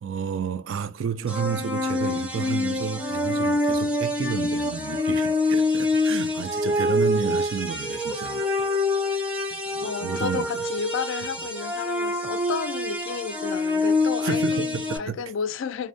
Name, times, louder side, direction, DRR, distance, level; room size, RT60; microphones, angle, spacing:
voice 1, 0.0-8.7 9.7-10.6 14.2-15.2, right 7 dB, 65° right, 0.3 m, -31 dB
sound 1, 1.3-15.0, left 2 dB, 5° right, 0.5 m, -26 dB
voice 2, 9.8-15.9, left 6 dB, 65° left, 0.3 m, -32 dB
2.6 x 2.1 x 2.6 m
head